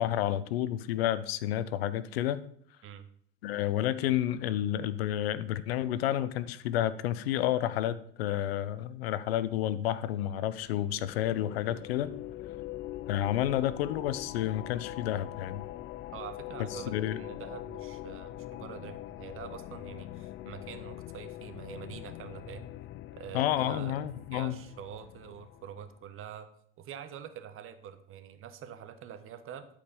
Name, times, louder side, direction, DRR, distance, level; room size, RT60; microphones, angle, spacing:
voice 1, 0.0-2.4 3.4-12.1 13.1-15.6 16.7-17.2 23.3-24.5, left 12 dB, 85° left, 16 dB, 0.7 m, -30 dB
sound 1, 10.6-25.9, left 14 dB, 40° left, 0.4 m, -43 dB
voice 2, 16.1-22.7 23.2-24.0 24.3-26.5 26.8-29.7, right 9 dB, 45° right, 10 dB, 1.3 m, -45 dB
12.0 x 5.1 x 5.4 m, 0.63 s
supercardioid pair, 95°, 30 cm